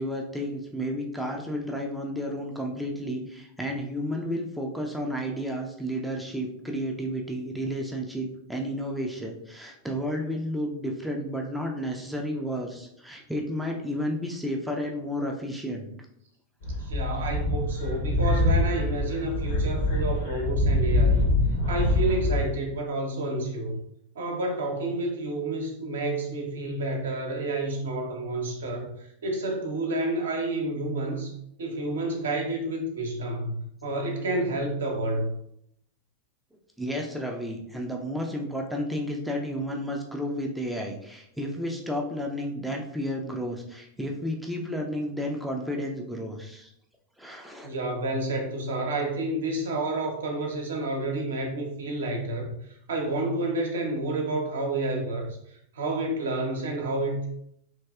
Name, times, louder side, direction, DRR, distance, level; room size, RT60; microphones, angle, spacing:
voice 1, 0.0-15.9 36.8-46.7 47.2-47.7, equal, ahead, 0 dB, 0.4 m, -32 dB
sound 1, 16.6-22.5, left 2 dB, 60° left, 0.8 m, -25 dB
voice 2, 16.8-21.3 21.7-23.8 24.1-35.3 47.6-57.3, right 2 dB, 65° right, 2 dB, 0.7 m, -30 dB
3.1 x 2.6 x 2.3 m, 0.73 s
figure-of-eight pair, 90°, 0 cm